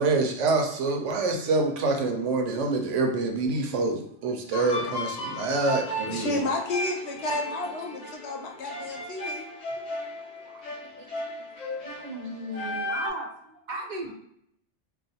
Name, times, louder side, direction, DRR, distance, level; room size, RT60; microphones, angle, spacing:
voice 1, 0.0-6.4 11.0-11.1, right 3 dB, 90° right, 1.0 m, -26 dB
voice 2, 4.5-4.9 6.1-9.4, left 3 dB, 70° left, 0.9 m, -32 dB
sound 1, 4.7-13.1, equal, 45° left, 0.7 m, -35 dB
voice 3, 11.8-14.1, right 1 dB, 50° right, 0.6 m, -36 dB
2.4 x 2.4 x 4.0 m
omnidirectional pair, 1.2 m